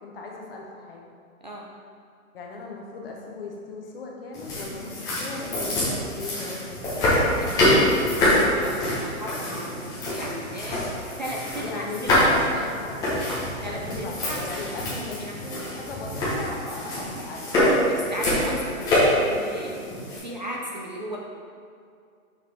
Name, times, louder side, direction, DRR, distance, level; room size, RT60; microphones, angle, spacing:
voice 1, 0.0-1.1 2.3-6.7 11.6-17.6, left 3 dB, 40° left, -1 dB, 1.1 m, -37 dB
sound 1, 4.3-20.2, left 1 dB, 10° left, 0.9 m, -25 dB
voice 2, 7.4-10.8 11.2-12.3 13.6-14.8 15.3-15.4 16.6-16.8 17.6-19.8 20.2-21.2, right 1 dB, 35° right, -2 dB, 0.4 m, -35 dB
6.3 x 6.0 x 3.5 m, 2.3 s
hypercardioid pair, 160°, 42 cm